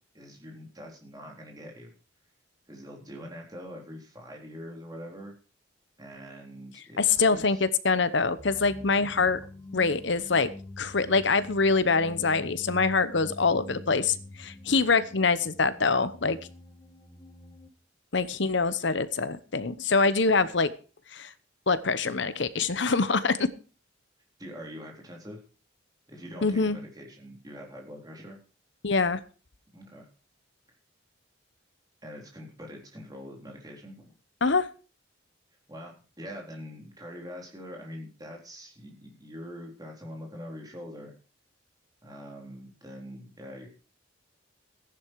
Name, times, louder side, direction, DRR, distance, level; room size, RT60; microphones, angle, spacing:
voice 1, 0.1-1.9 2.7-5.3 6.0-7.7 9.1-9.3 24.4-25.4 26.1-28.4 29.7-30.1 32.0-34.1 35.7-41.1 42.0-43.7, equal, 20° right, 0 dB, 3.9 m, -44 dB
voice 2, 7.0-9.4 9.7-10.5 10.8-16.4 18.1-20.7 21.1-21.3 21.7-23.5 26.4-26.8 28.8-29.2 34.4-34.7, left 4 dB, 60° left, 14 dB, 0.9 m, -24 dB
sound 1, 8.4-17.7, left 1 dB, 20° left, 1.1 m, -45 dB
14.5 x 10.5 x 4.7 m, 0.36 s
head